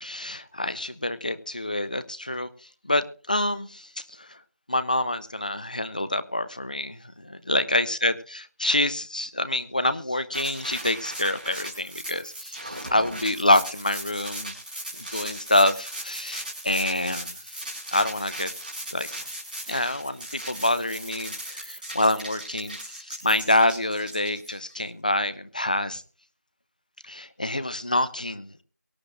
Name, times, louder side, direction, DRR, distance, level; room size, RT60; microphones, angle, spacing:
voice 1, 0.0-2.5 2.8-3.9 4.2-4.4 4.7-7.0 7.5-14.5 15.0-17.6 17.9-18.5 18.9-19.1 19.7-26.0 27.0-28.6, left 1 dB, 30° left, 14 dB, 0.7 m, -26 dB
sound 1, 10.3-24.8, right 1 dB, 30° right, 5.0 m, -38 dB
23.5 x 9.4 x 2.5 m, 0.40 s
figure-of-eight pair, 170°, 9 cm